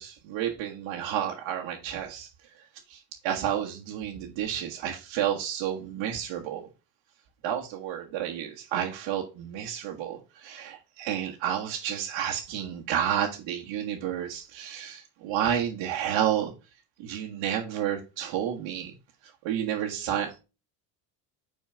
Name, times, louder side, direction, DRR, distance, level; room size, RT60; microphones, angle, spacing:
voice 1, 0.0-2.3 2.9-6.7 7.4-16.5 17.0-18.9 19.4-20.4, right 10 dB, 70° right, 0 dB, 1.5 m, -31 dB
5.7 x 4.4 x 5.0 m, 0.30 s
supercardioid pair, 90°, 48 cm